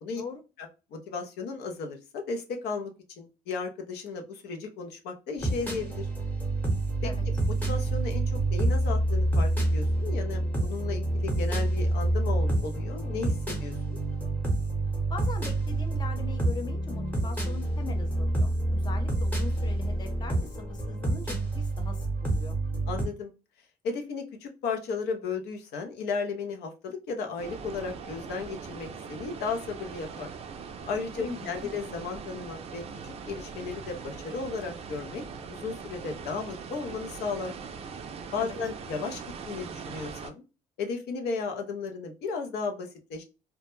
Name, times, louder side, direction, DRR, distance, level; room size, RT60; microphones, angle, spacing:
voice 1, 0.6-2.9 3.2-6.1 7.0-7.1 7.6-14.0 22.9-23.3 23.8-30.3 30.9-35.2 35.5-37.6 38.3-39.2 39.5-40.4 40.8-43.2, left 4 dB, 75° left, 0.6 m, -35 dB
sound 1, 5.4-23.1, right 1 dB, 10° left, 0.9 m, -28 dB
voice 2, 15.1-22.6 31.2-31.7 38.4-38.6, left 4 dB, 25° left, 0.5 m, -41 dB
sound 2, 27.4-40.3, right 5 dB, 35° right, 0.4 m, -41 dB
2.1 x 2.1 x 3.0 m
cardioid pair, 110°, 17 cm